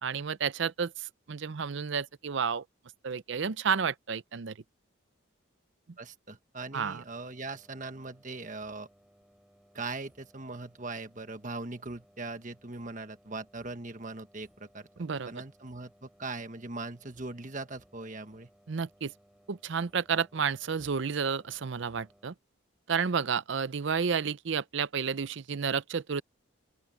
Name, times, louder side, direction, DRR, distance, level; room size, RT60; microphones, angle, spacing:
voice 1, 0.0-2.6 3.0-4.5 6.7-7.0 15.0-15.3 18.7-19.1 19.5-22.3 22.9-26.2, right 6 dB, 65° right, 0.5 m, -31 dB
voice 2, 6.0-8.9 9.7-14.9 15.3-18.5, right 3 dB, 40° right, 1.4 m, -40 dB
sound 1, 7.0-22.3, equal, 5° right, 3.9 m, -63 dB
open air
head